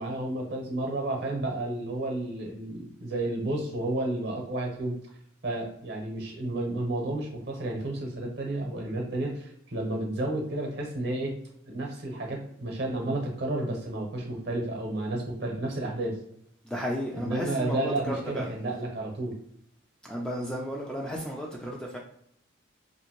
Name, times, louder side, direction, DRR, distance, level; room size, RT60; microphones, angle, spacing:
voice 1, 0.0-5.0 5.4-11.3 11.7-16.2 17.1-19.3, right 1 dB, 55° right, 1 dB, 0.8 m, -31 dB
voice 2, 16.7-18.5 20.0-22.0, equal, 5° left, -2 dB, 0.3 m, -33 dB
2.6 x 2.5 x 2.9 m, 0.72 s
head